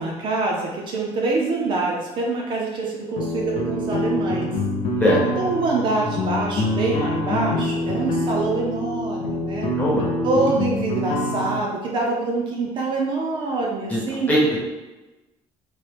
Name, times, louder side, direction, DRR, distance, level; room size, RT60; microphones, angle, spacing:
voice 1, 0.0-4.5 5.4-9.7 10.2-14.3, right 3 dB, 45° right, -1 dB, 0.4 m, -25 dB
sound 1, 3.2-11.6, left 1 dB, 55° left, 0.5 m, -25 dB
voice 2, 9.8-10.1 13.9-14.0 14.3-14.6, equal, 15° left, -5 dB, 0.7 m, -19 dB
3.0 x 2.1 x 3.2 m, 1.1 s
cardioid pair, 170°, 12 cm